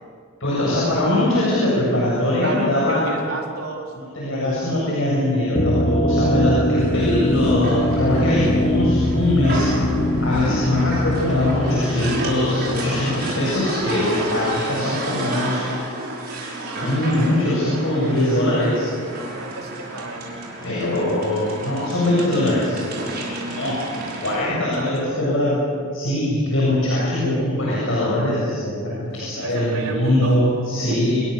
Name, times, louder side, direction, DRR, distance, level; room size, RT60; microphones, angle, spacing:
voice 1, 0.4-3.1 4.0-9.6 10.2-15.6 16.8-18.8 20.6-22.9 23.5-23.8 24.2-25.6 25.9-31.3, left 1 dB, 65° left, -6 dB, 7.8 m, -22 dB
voice 2, 2.4-3.9 6.6-7.0 19.3-20.3 23.1-23.5 24.4-25.2 28.9-30.4 30.9-31.0, right 3 dB, 80° right, 0 dB, 4.6 m, -33 dB
sound 1, 5.5-14.2, left 1 dB, 30° left, 1.1 m, -22 dB
sound 2, 6.8-24.4, right 1 dB, 45° right, 6.2 m, -31 dB
28.5 x 22.5 x 6.9 m, 2.1 s
head